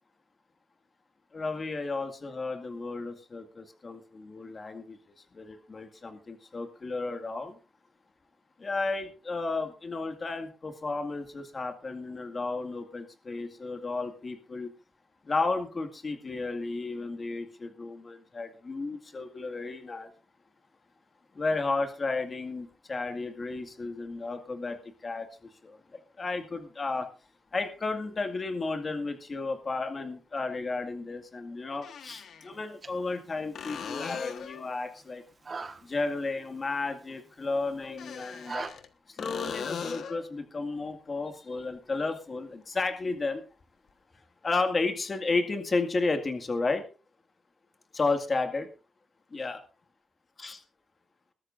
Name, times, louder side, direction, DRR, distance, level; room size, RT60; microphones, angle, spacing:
voice 1, 1.3-5.0 5.3-7.6 8.6-14.7 15.2-20.1 21.3-24.8 25.0-25.8 26.2-27.1 27.5-35.2 35.8-38.7 39.1-43.4 44.4-46.8 47.9-48.7 49.3-49.6 50.4-50.6, left 3 dB, 30° left, 7 dB, 2.0 m, -33 dB
sound 1, 28.2-28.3 30.4-30.5 31.7-32.5 33.5-34.7 37.8-38.9 39.2-40.2 43.9-44.0, left 7 dB, 80° left, 1.4 m, -39 dB
sound 2, 32.5-38.7, right 4 dB, 35° right, 1.5 m, -45 dB
21.5 x 13.0 x 2.6 m, 0.33 s
wide cardioid pair, 150°, 0 cm